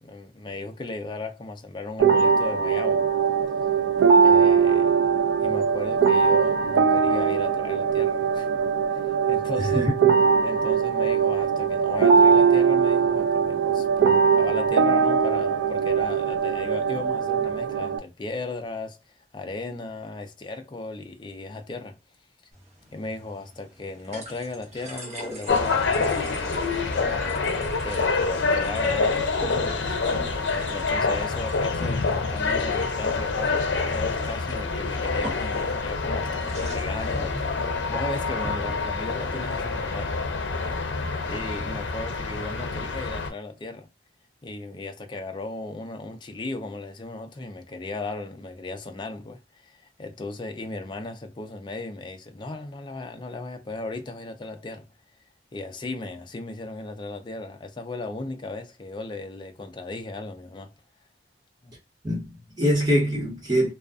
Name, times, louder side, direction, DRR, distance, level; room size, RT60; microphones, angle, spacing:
voice 1, 0.0-3.1 4.2-4.9 5.4-8.5 8.9-9.8 10.4-22.0 22.9-26.3 26.9-27.4 27.8-30.0 30.7-40.1 41.3-43.9 44.4-54.9 55.5-60.7 61.6-61.7, left 2 dB, 25° left, 0.4 m, -36 dB
sound 1, 2.0-18.0, right 6 dB, 75° right, 0.3 m, -21 dB
voice 2, 9.5-10.1 62.0-63.7, equal, 20° right, 1.3 m, -24 dB
sound 2, 22.5-39.5, right 1 dB, 35° right, 0.9 m, -43 dB
sound 3, 25.5-43.3, left 4 dB, 70° left, 0.6 m, -27 dB
2.4 x 2.3 x 2.4 m
head